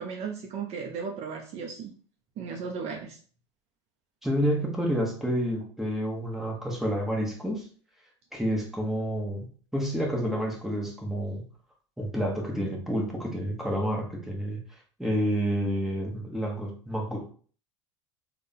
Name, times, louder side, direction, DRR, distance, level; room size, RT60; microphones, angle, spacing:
voice 1, 0.0-1.9 2.4-3.2, right 5 dB, 40° right, 3 dB, 0.6 m, -35 dB
voice 2, 4.2-7.7 8.3-11.4 12.0-14.6 15.0-17.3, equal, ahead, -1 dB, 1.2 m, -29 dB
3.8 x 2.3 x 3.8 m, 0.43 s
figure-of-eight pair, 80°, 16 cm